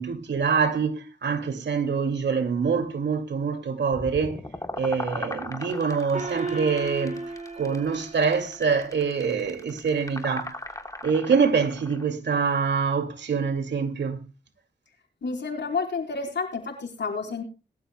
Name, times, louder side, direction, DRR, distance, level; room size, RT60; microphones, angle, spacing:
voice 1, 0.0-4.4 4.8-7.3 7.6-10.6 11.0-14.2, right 5 dB, 75° right, 2.3 m, -25 dB
sound 1, 3.9-12.1, left 1 dB, 20° left, 3.4 m, -38 dB
Gong, 6.1-9.0, right 2 dB, 45° right, 4.5 m, -35 dB
voice 2, 15.2-17.4, left 4 dB, 75° left, 4.3 m, -30 dB
21.0 x 12.5 x 2.2 m
cardioid pair, 45°, 18 cm